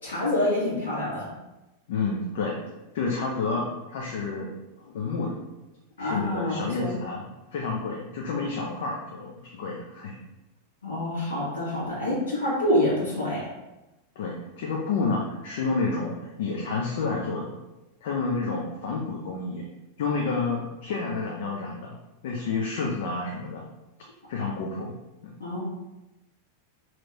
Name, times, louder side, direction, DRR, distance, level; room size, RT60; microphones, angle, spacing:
voice 1, 0.0-1.3 6.0-6.9 10.8-13.4 25.4-25.6, left 1 dB, 70° left, -7 dB, 1.5 m, -26 dB
voice 2, 1.9-2.6 2.9-4.5 4.8-5.3 6.0-7.3 7.5-10.1 14.2-17.6 18.0-19.6 20.0-22.0 22.2-23.6 24.3-24.9 25.2-25.3, left 4 dB, 55° left, -1 dB, 0.4 m, -29 dB
2.9 x 2.8 x 2.2 m, 1.0 s
figure-of-eight pair, 90°, 0 cm